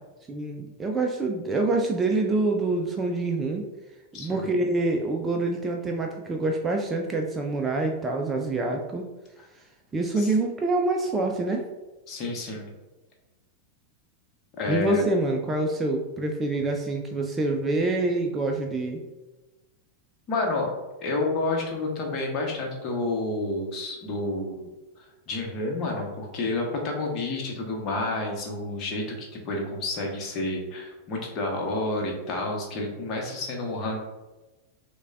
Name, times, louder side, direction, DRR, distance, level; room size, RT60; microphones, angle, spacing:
voice 1, 0.3-3.7 4.1-9.1 9.9-11.6 14.7-19.0, right 2 dB, 15° right, 2 dB, 0.4 m, -26 dB
voice 2, 4.1-4.4 10.2-10.3 12.1-12.7 14.6-15.0 20.3-20.7 21.0-24.7 25.0-34.0, left 2 dB, 35° left, 0 dB, 1.0 m, -29 dB
6.2 x 2.2 x 2.4 m, 1.1 s
figure-of-eight pair, 90°, 0 cm